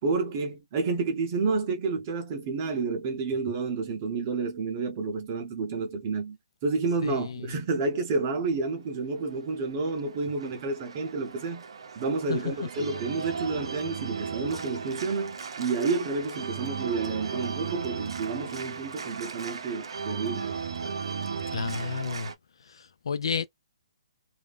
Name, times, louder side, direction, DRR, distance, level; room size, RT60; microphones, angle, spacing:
voice 1, 0.0-6.4 6.6-11.6 11.9-20.5, right 4 dB, 25° right, 0.7 m, -30 dB
voice 2, 7.0-7.5 12.3-12.5 21.5-22.3 22.7-23.5, left 6 dB, 65° left, 0.3 m, -31 dB
Organ, 9.2-22.3, right 6 dB, 70° right, 0.6 m, -36 dB
2.5 x 2.1 x 3.3 m
hypercardioid pair, 175°, 3 cm